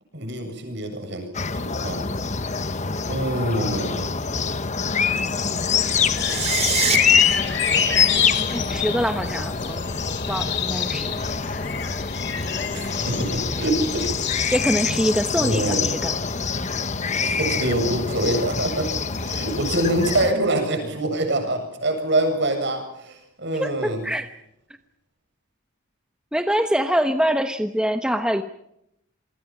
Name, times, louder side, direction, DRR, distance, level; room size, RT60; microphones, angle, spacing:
voice 1, 0.1-1.3 1.5-2.1 3.0-4.1 12.7-14.1 14.4-14.5 15.3-15.9 17.3-18.9 19.2-24.0, right 1 dB, 60° right, 5 dB, 7.8 m, -25 dB
sound 1, 1.3-20.3, left 6 dB, 35° left, 1.1 m, -25 dB
sound 2, 5.8-14.6, left 8 dB, 60° left, 2.9 m, -29 dB
sound 3, 6.1-7.0, right 8 dB, 30° right, 2.6 m, -24 dB
voice 2, 8.5-9.8 10.3-11.1 14.5-16.1 23.5-24.3 26.3-28.4, equal, 5° right, 7 dB, 1.1 m, -24 dB
27.5 x 23.5 x 6.1 m, 0.79 s
head